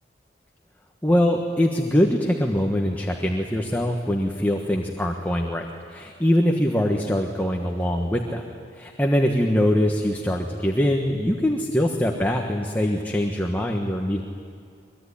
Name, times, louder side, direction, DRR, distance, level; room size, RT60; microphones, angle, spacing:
voice 1, 1.0-8.4 8.7-14.2, left 1 dB, 10° left, 1 dB, 1.4 m, -23 dB
23.0 x 22.5 x 10.0 m, 2.4 s
head